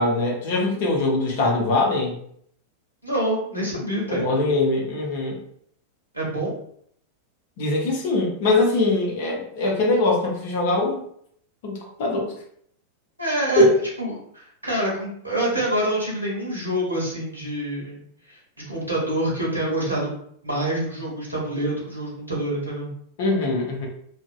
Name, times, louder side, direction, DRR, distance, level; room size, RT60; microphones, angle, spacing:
voice 1, 0.0-2.1 4.1-5.4 7.6-11.0 11.6-12.3 13.6-13.7 23.2-23.9, left 2 dB, 50° left, -1 dB, 0.7 m, -22 dB
voice 2, 3.0-4.2 6.1-6.5 13.2-13.6 14.0-18.0 18.3-18.4 18.7-20.2 20.4-22.9, right 1 dB, 85° right, -5 dB, 0.7 m, -26 dB
2.5 x 2.0 x 2.4 m, 0.66 s
figure-of-eight pair, 90°, 0 cm